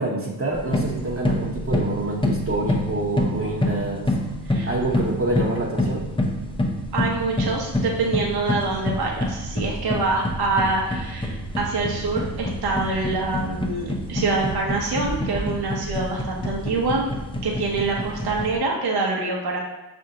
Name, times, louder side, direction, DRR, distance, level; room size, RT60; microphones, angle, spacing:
voice 1, 0.0-4.1 4.6-6.0, right 2 dB, 30° right, -3 dB, 0.9 m, -26 dB
sound 1, 0.5-18.6, left 1 dB, 10° left, 0.6 m, -27 dB
voice 2, 6.9-17.1 17.4-19.6, right 3 dB, 60° right, -1 dB, 0.9 m, -25 dB
5.6 x 2.6 x 2.9 m, 1.0 s
supercardioid pair, 50°, 43 cm